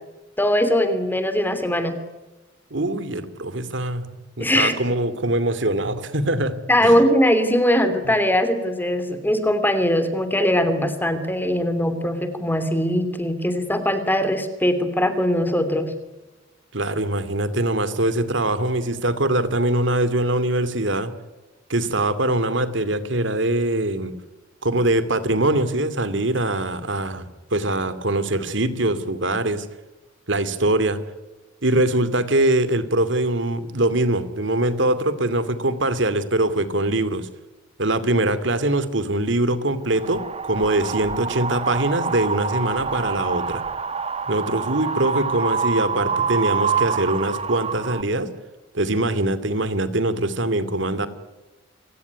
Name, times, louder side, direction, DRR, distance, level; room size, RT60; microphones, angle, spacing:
voice 1, 0.4-1.9 4.4-4.7 6.7-15.9, equal, 10° left, 10 dB, 2.9 m, -21 dB
voice 2, 2.7-4.0 4.4-6.5 6.8-7.0 16.7-21.1 21.7-24.1 24.6-29.6 30.3-31.0 31.6-37.3 37.8-40.2 40.5-43.6 44.3-48.3 48.7-51.1, right 1 dB, 70° right, 12 dB, 2.5 m, -22 dB
Wind, 39.9-48.0, right 5 dB, 35° right, 1.2 m, -26 dB
28.0 x 16.5 x 9.7 m, 1.1 s
head